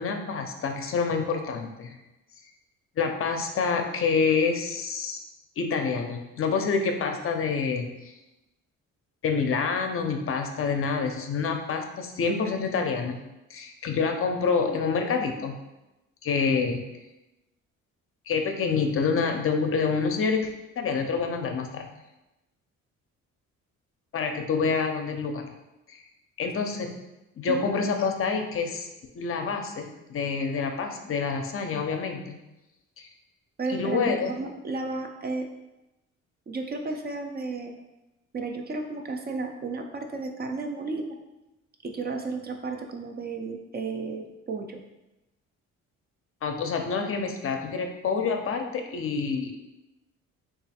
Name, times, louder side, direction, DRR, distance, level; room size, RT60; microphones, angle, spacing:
voice 1, 0.0-2.0 3.0-5.2 5.6-8.1 9.2-13.2 13.5-15.6 16.2-16.8 18.3-21.9 24.1-25.5 25.9-26.0 26.4-27.0 27.4-28.9 29.2-32.4 33.0-33.1 33.7-34.4 46.4-49.6, left 5 dB, 45° left, 4 dB, 0.5 m, -27 dB
voice 2, 33.6-35.5 36.5-37.7 38.3-41.1 41.8-44.8, right 3 dB, 35° right, 4 dB, 0.4 m, -33 dB
3.0 x 2.4 x 4.1 m, 0.97 s
cardioid pair, 90°, 30 cm